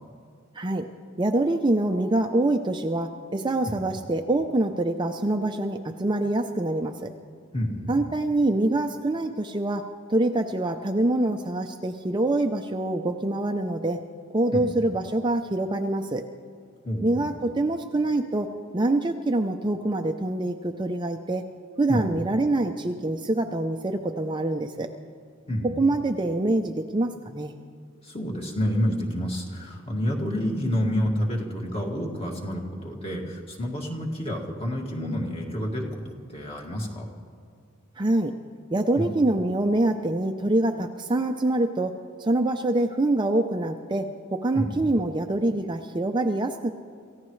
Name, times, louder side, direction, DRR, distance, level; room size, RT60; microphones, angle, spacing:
voice 1, 0.5-0.9 1.2-7.1 7.9-9.8 10.1-14.0 14.3-16.2 17.0-18.5 18.7-21.4 21.8-24.9 25.8-27.5 38.0-38.3 38.7-46.7, right 2 dB, 20° right, 5 dB, 0.5 m, -25 dB
voice 2, 7.5-8.1 14.5-14.7 16.8-17.3 21.9-22.0 25.5-25.8 28.0-37.1 39.0-39.1 44.5-44.9, equal, 30° left, 0 dB, 2.1 m, -29 dB
27.5 x 15.0 x 3.2 m, 2.3 s
head